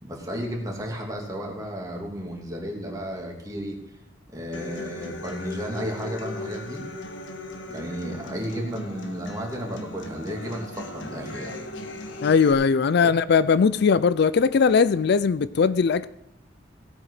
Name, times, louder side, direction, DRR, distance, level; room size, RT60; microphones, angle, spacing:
voice 1, 0.0-3.8 4.3-6.8 7.7-11.6 13.0-13.1, equal, 20° right, -1 dB, 2.9 m, -33 dB
Human voice / Acoustic guitar, 4.5-12.5, left 2 dB, 85° left, 1.6 m, -38 dB
voice 2, 12.2-16.1, left 5 dB, 60° left, 16 dB, 0.4 m, -19 dB
17.5 x 8.7 x 4.9 m, 0.80 s
head